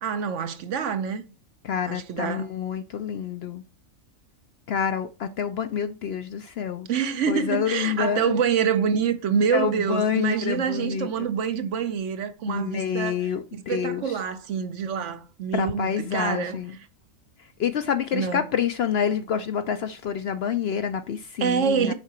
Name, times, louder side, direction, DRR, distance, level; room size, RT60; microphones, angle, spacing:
voice 1, 0.0-1.2 1.8-2.5 6.9-13.2 13.5-16.6 18.1-18.4 21.4-21.9, right 7 dB, 65° right, 1.0 m, -26 dB
voice 2, 1.6-3.6 4.7-6.9 7.3-8.4 9.5-11.3 12.5-14.2 15.5-16.8 17.4-21.9, left 8 dB, 65° left, 0.7 m, -28 dB
6.6 x 4.8 x 4.3 m
omnidirectional pair, 1.4 m